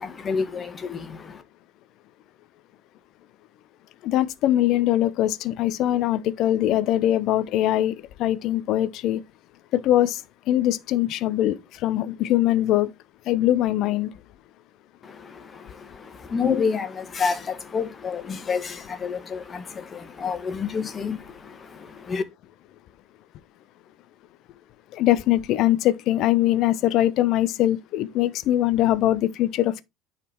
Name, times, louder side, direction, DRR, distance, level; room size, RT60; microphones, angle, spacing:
voice 1, 0.0-1.4 15.0-22.2, left 5 dB, 30° left, 1.7 m, -29 dB
voice 2, 4.0-9.2 9.7-10.2 10.5-12.9 13.3-14.1 24.9-29.8, left 13 dB, 55° left, 0.8 m, -22 dB
9.8 x 4.2 x 4.5 m
figure-of-eight pair, 65°, 0 cm